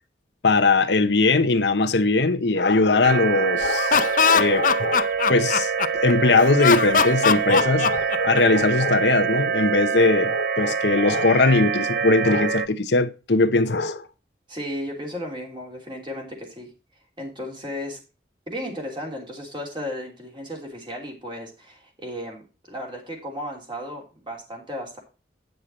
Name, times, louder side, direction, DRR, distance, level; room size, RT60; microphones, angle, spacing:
voice 1, 0.4-5.7 6.0-14.1, left 3 dB, 80° left, 0.9 m, -20 dB
sound 1, 3.0-12.7, right 6 dB, 55° right, 0.5 m, -25 dB
Laughter, 3.6-6.1 6.6-8.6, left 6 dB, 50° left, 0.5 m, -21 dB
voice 2, 14.5-16.7 17.2-18.0 18.5-25.0, equal, 25° right, 3.1 m, -34 dB
9.3 x 6.7 x 4.2 m
head